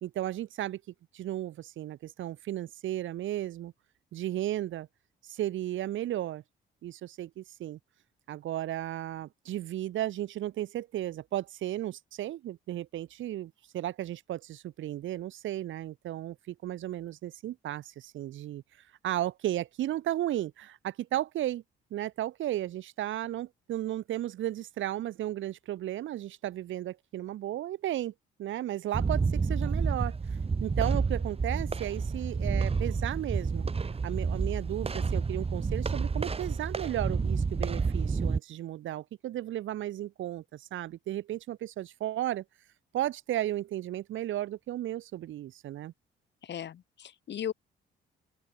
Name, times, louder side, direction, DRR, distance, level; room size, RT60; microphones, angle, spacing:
voice 1, 0.0-0.8 1.1-3.7 4.1-4.9 5.2-6.4 6.8-7.8 8.3-18.6 19.0-21.6 21.9-28.1 28.4-30.1 30.6-33.7 34.0-42.4 42.9-45.9, right 13 dB, 75° right, 1.6 m, -34 dB
sound 1, 28.9-38.4, right 4 dB, 30° right, 2.0 m, -29 dB
voice 2, 46.4-47.5, left 9 dB, 60° left, 3.2 m, -37 dB
open air
cardioid pair, 90°, 20 cm